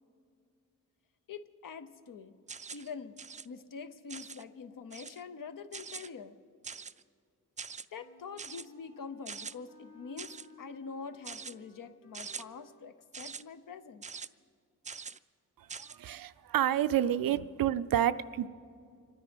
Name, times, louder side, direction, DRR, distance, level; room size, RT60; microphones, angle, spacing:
voice 1, 1.3-2.4 2.7-3.1 3.4-6.4 7.9-10.3 10.6-14.0, left 5 dB, 70° left, 10 dB, 0.8 m, -45 dB
sound 1, 2.5-2.9 3.2-3.5 4.1-4.4 4.9-5.2 5.7-6.1 6.6-7.0 7.6-7.9 8.4-8.7 9.3-9.5 10.2-10.5 11.2-11.5 12.1-12.4 13.1-13.4 14.0-14.3 14.8-15.2 15.7-16.0, right 5 dB, 25° right, 0.3 m, -43 dB
Wind instrument woodwind instrument, 8.0-12.9, left 4 dB, 55° left, 2.0 m, -58 dB
voice 2, 15.6-18.5, right 11 dB, 90° right, 14 dB, 0.5 m, -29 dB
25.5 x 9.9 x 5.2 m, 2.3 s
cardioid pair, 85°, 33 cm